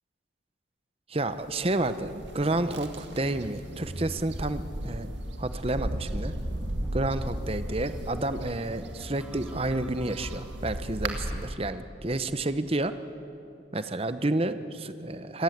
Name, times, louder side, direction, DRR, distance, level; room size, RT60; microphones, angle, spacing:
voice 1, 1.1-5.1 5.4-6.3 6.9-12.9 13.7-15.4, right 2 dB, 30° right, 11 dB, 0.8 m, -30 dB
sound 1, 1.3-11.5, right 1 dB, 60° right, 2.1 m, -36 dB
sound 2, 6.1-11.0, right 1 dB, 5° right, 1.3 m, -51 dB
27.5 x 17.5 x 8.1 m, 2.8 s
head